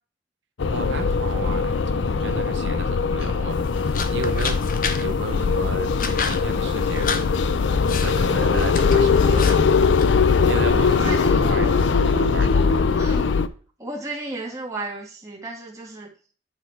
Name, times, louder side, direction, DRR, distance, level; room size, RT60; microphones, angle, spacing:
sound 1, 0.6-13.5, left 5 dB, 90° left, 0.5 m, -20 dB
voice 1, 0.7-4.6 5.0-5.9 6.2-7.2 7.7-9.7 10.4-12.9, right 3 dB, 85° right, 0.8 m, -34 dB
sound 2, 3.5-11.3, left 6 dB, 45° left, 0.8 m, -33 dB
voice 2, 10.7-11.8 13.0-13.3 13.8-16.1, right 2 dB, 15° right, 1.9 m, -34 dB
9.5 x 4.1 x 4.5 m
head